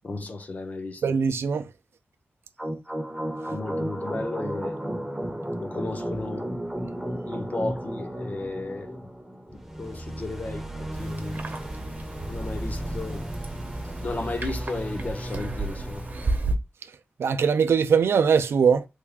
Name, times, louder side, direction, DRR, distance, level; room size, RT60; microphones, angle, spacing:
voice 1, 0.0-1.2 3.5-4.8 5.6-6.5 7.3-9.1 9.5-11.4 12.3-13.3 14.0-16.0, left 2 dB, 40° left, 0.6 m, -34 dB
voice 2, 1.0-1.7 17.2-18.8, right 6 dB, 90° right, 0.3 m, -21 dB
sound 1, 2.6-16.3, equal, 5° right, 0.6 m, -34 dB
sound 2, 10.9-16.6, right 2 dB, 45° right, 0.7 m, -33 dB
3.4 x 2.3 x 3.4 m
wide cardioid pair, 120°, 4 cm